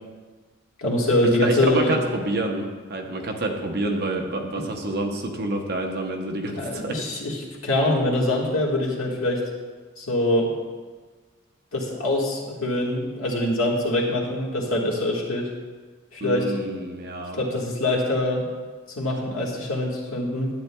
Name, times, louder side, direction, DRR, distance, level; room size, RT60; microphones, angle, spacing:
voice 1, 0.8-2.0 6.6-7.4 7.6-9.4 10.0-10.5 11.7-15.5 16.1-16.5 17.4-18.5 19.0-20.5, left 1 dB, 80° left, -3 dB, 1.6 m, -24 dB
voice 2, 1.4-7.0 16.2-17.4, right 2 dB, 50° right, 2 dB, 0.8 m, -28 dB
12.0 x 8.5 x 2.3 m, 1.4 s
head